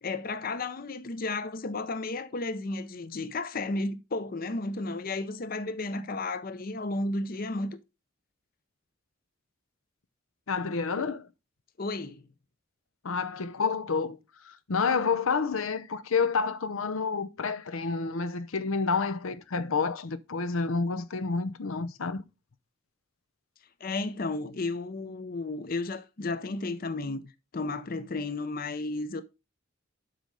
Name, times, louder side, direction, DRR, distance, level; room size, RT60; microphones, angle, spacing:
voice 1, 0.0-7.8 11.8-12.2 23.8-29.2, left 2 dB, 45° left, 0.6 m, -33 dB
voice 2, 10.5-11.3 13.0-14.2 14.4-22.2, left 4 dB, 80° left, 0.7 m, -29 dB
8.0 x 5.3 x 4.7 m
head